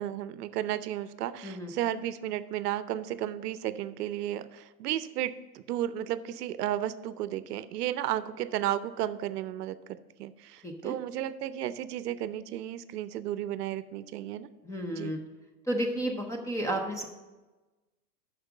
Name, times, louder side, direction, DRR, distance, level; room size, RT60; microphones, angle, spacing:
voice 1, 0.0-14.5 15.0-15.1, right 12 dB, 75° right, 15 dB, 0.6 m, -33 dB
voice 2, 10.6-10.9 14.6-15.2 15.7-17.1, right 1 dB, 5° left, 3 dB, 0.5 m, -32 dB
6.5 x 6.2 x 7.2 m, 1.2 s
hypercardioid pair, 120°, 48 cm